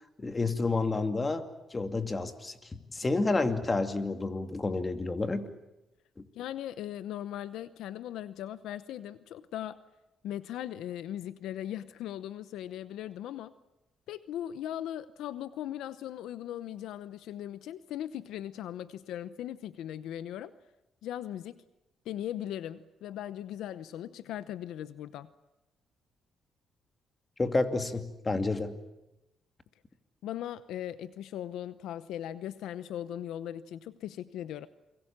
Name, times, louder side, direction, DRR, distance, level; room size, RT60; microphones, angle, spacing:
voice 1, 0.2-2.5 2.9-5.5 27.4-28.8, left 3 dB, 25° left, 7 dB, 2.4 m, -30 dB
voice 2, 6.4-9.8 10.2-13.5 14.1-20.5 21.0-21.6 22.1-25.3 30.2-34.7, left 11 dB, 85° left, 14 dB, 0.8 m, -39 dB
29.0 x 23.0 x 7.4 m, 0.94 s
cardioid pair, 90°, 0 cm